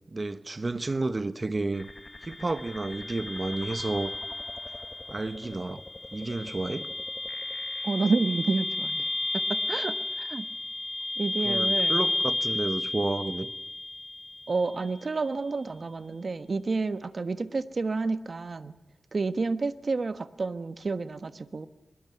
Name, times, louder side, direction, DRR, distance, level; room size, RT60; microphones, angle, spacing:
voice 1, 0.1-1.9 2.2-4.1 5.1-5.8 6.1-6.9 11.4-13.5, right 2 dB, 35° right, 1.2 m, -31 dB
sound 1, 1.7-14.7, left 2 dB, 25° left, 1.3 m, -32 dB
voice 2, 7.8-9.1 9.3-10.5 11.2-12.0 14.5-18.8 19.1-21.7, right 3 dB, 55° right, 1.3 m, -30 dB
23.0 x 22.0 x 9.5 m
wide cardioid pair, 95°, 0 cm